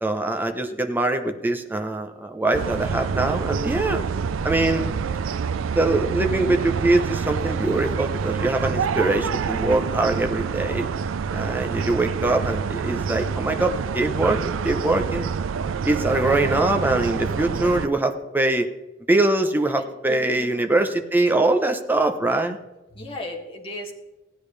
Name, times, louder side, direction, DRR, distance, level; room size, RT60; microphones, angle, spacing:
voice 1, 0.0-4.0 4.4-5.0 5.7-10.9 11.3-15.3 15.8-18.7 19.1-22.6, right 2 dB, 10° right, 5 dB, 0.8 m, -23 dB
sound 1, 2.5-17.9, right 6 dB, 85° right, 0.4 m, -27 dB
voice 2, 19.8-20.5 22.9-23.9, left 1 dB, 30° left, -2 dB, 2.0 m, -36 dB
16.0 x 10.5 x 3.3 m, 1.1 s
head